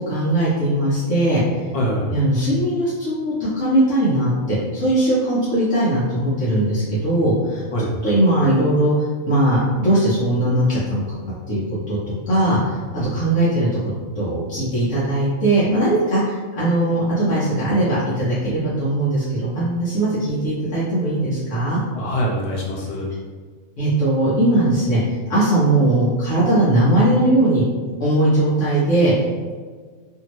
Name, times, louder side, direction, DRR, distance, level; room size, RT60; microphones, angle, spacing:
voice 1, 0.1-1.4 2.1-7.6 8.0-11.2 11.5-11.6 11.9-12.0 12.3-12.8 13.1-13.7 14.1-21.8 23.8-25.0 25.3-27.6 28.0-29.1, right 1 dB, 60° left, -10 dB, 1.1 m, -19 dB
voice 2, 1.7-2.1 7.7-7.9 13.0-13.2 21.9-23.1, equal, 40° left, -4 dB, 0.5 m, -24 dB
2.7 x 2.7 x 3.0 m, 1.5 s
omnidirectional pair, 1.5 m